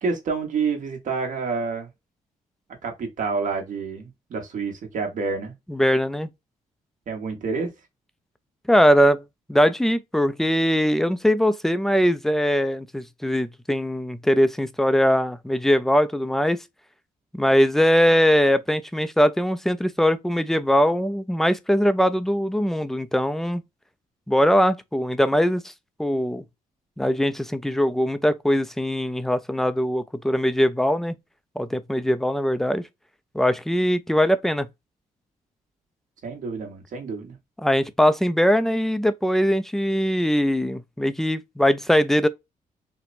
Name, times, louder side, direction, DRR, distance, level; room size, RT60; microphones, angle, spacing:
voice 1, 0.0-1.9 2.8-5.5 7.1-7.7 36.2-37.4, right 4 dB, 60° right, 1.3 m, -28 dB
voice 2, 5.7-6.3 8.7-9.2 9.5-16.6 17.3-23.6 24.3-25.7 26.0-26.4 27.0-31.1 31.6-32.8 33.3-34.7 37.6-42.3, equal, ahead, 0.3 m, -21 dB
4.2 x 2.1 x 2.4 m
cardioid pair, 115°, 15 cm